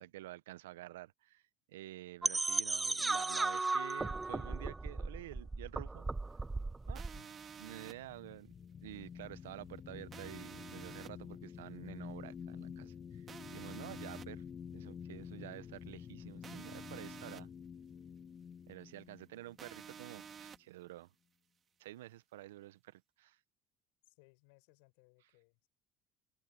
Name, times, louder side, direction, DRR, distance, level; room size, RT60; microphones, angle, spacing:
voice 1, 0.0-1.4 1.7-6.1 6.9-7.0 7.6-8.5 8.8-14.4 14.7-17.5 18.7-21.1 21.8-23.4, right 15 dB, 85° right, 0.8 m, -50 dB
sound 1, 2.2-7.2, right 3 dB, 20° right, 0.3 m, -36 dB
sound 2, 6.9-20.5, left 7 dB, 40° left, 1.5 m, -49 dB
sound 3, 6.9-7.9 10.1-11.1 13.3-14.2 16.4-17.4 19.6-20.6, right 7 dB, 40° right, 2.4 m, -51 dB
voice 2, 24.0-25.7, left 33 dB, 80° left, 7.0 m, -66 dB
open air
hypercardioid pair, 70°, 0 cm